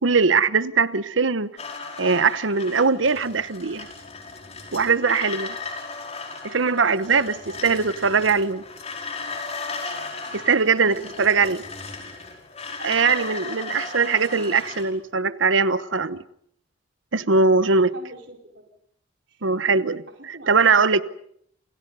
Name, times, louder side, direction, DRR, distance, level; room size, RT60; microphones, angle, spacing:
voice 1, 0.0-1.5 2.0-3.9 4.7-5.6 6.4-8.6 10.3-11.6 12.8-16.2 17.1-17.9 19.4-21.0, right 4 dB, 90° right, 1.1 m, -21 dB
sound 1, 1.6-14.9, left 4 dB, 35° left, 5.1 m, -36 dB
voice 2, 7.0-7.7 10.7-11.6 17.9-18.7 19.3-19.5 20.2-21.0, right 2 dB, 70° right, 4.4 m, -43 dB
29.0 x 28.5 x 5.6 m
head